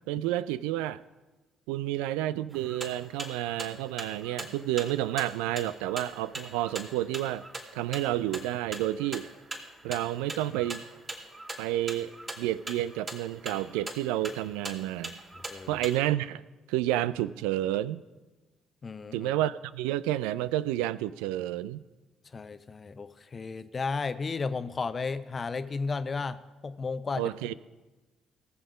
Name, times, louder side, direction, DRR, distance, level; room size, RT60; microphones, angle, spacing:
voice 1, 0.1-1.0 1.7-7.5 7.7-9.3 9.8-10.8 11.6-15.1 15.7-16.4 16.7-18.0 19.1-21.8 27.2-27.5, right 14 dB, 75° right, 17 dB, 0.3 m, -30 dB
sound 1, 2.5-16.0, right 2 dB, 35° right, 3.0 m, -41 dB
voice 2, 18.8-19.3 22.3-27.5, left 4 dB, 35° left, 13 dB, 0.7 m, -34 dB
18.5 x 7.2 x 5.0 m, 1.2 s
hypercardioid pair, 45°, 0 cm